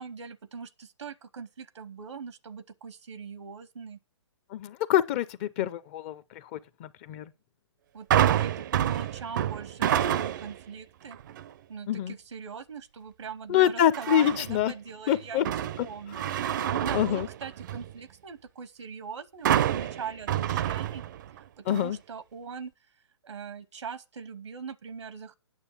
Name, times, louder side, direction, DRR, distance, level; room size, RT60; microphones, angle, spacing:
voice 1, 0.0-4.0 7.9-11.2 11.7-15.5 15.8-21.0 21.6-22.7 23.2-25.3, right 6 dB, 80° right, 0.9 m, -41 dB
voice 2, 4.5-7.3 11.9-12.1 13.5-14.7 15.1-15.5 15.8-16.2 16.9-17.3 21.7-22.0, left 11 dB, 25° left, 0.4 m, -26 dB
sound 1, 8.1-10.6 11.1-11.5 13.9-14.6 15.1-17.9 19.5-21.4 21.7-21.8, right 11 dB, 40° right, 0.5 m, -28 dB
9.1 x 6.6 x 7.1 m
hypercardioid pair, 150°, 15 cm